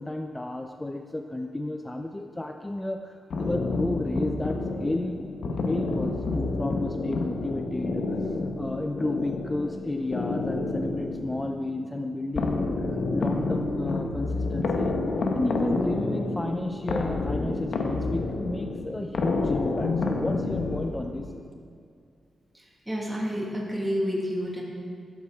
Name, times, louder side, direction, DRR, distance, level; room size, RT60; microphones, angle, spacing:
voice 1, 0.0-5.2 5.7-8.2 8.6-15.0 15.3-21.3, left 1 dB, 15° left, 5 dB, 0.4 m, -32 dB
sound 1, 3.3-21.4, left 3 dB, 65° left, 0.9 m, -29 dB
voice 2, 22.5-24.6, equal, 5° right, -4 dB, 1.7 m, -30 dB
11.0 x 7.9 x 3.5 m, 2.4 s
cardioid pair, 105°, 0 cm